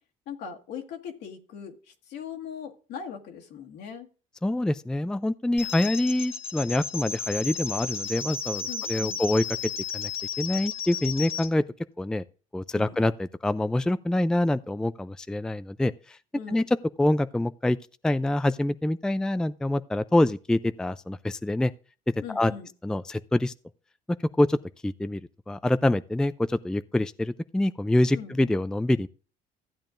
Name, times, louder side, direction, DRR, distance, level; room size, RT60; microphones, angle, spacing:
voice 1, 0.3-4.1 8.7-9.2 12.7-13.0 16.3-16.7 22.2-22.7 28.2-28.4, left 7 dB, 70° left, 1.8 m, -40 dB
voice 2, 4.4-9.4 9.9-10.1 10.4-11.6 12.0-12.2 12.5-16.2 16.5-16.6 17.0-17.8 18.0-21.7 22.3-22.5 22.8-23.5 24.4-24.6 24.8-25.2 25.5-29.1, left 1 dB, 5° left, 0.4 m, -25 dB
sound 1, 5.6-11.5, left 6 dB, 35° left, 1.5 m, -34 dB
15.0 x 8.7 x 2.6 m
supercardioid pair, 85°, 18 cm